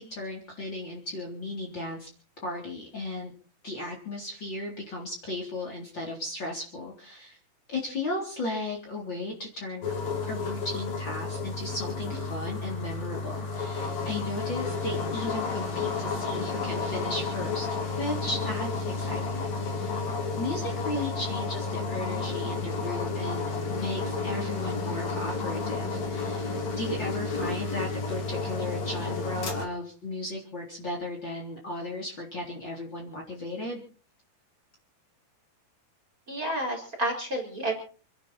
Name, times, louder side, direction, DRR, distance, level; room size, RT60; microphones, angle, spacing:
voice 1, 0.0-2.1 2.4-3.3 3.6-7.4 7.7-9.9 10.2-20.1 20.4-33.8, left 2 dB, 30° left, 0 dB, 4.1 m, -35 dB
sound 1, 9.8-29.7, left 4 dB, 50° left, 4.2 m, -31 dB
voice 2, 36.3-37.8, right 1 dB, 20° right, 1 dB, 4.9 m, -30 dB
28.0 x 11.5 x 4.4 m, 0.41 s
omnidirectional pair, 4.3 m